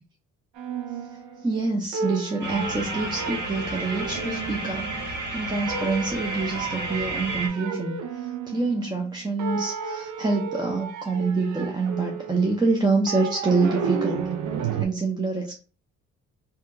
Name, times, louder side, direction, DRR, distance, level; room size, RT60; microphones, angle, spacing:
sound 1, 0.6-1.7 1.9-5.2 5.7-9.1 9.4-14.9, right 6 dB, 75° right, 0.5 m, -33 dB
voice 1, 1.0-14.3 14.7-15.6, right 3 dB, 15° right, 0 dB, 0.5 m, -26 dB
sound 2, 2.4-7.5, right 2 dB, 35° right, 1.1 m, -32 dB
2.7 x 2.2 x 3.7 m, 0.37 s
cardioid pair, 90°, 30 cm